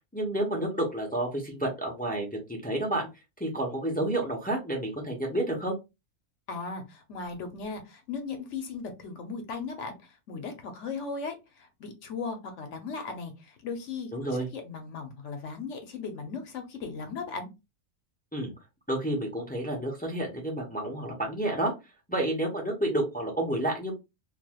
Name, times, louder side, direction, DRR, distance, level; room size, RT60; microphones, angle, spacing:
voice 1, 0.1-3.1 3.4-5.7 14.1-14.5 18.3-18.5 18.9-21.7 22.1-23.9, right 1 dB, 10° left, -1 dB, 0.6 m, -30 dB
voice 2, 6.5-14.1 14.5-17.5, left 4 dB, 65° left, 5 dB, 1.0 m, -37 dB
3.1 x 2.6 x 2.3 m, 0.24 s
omnidirectional pair, 1.4 m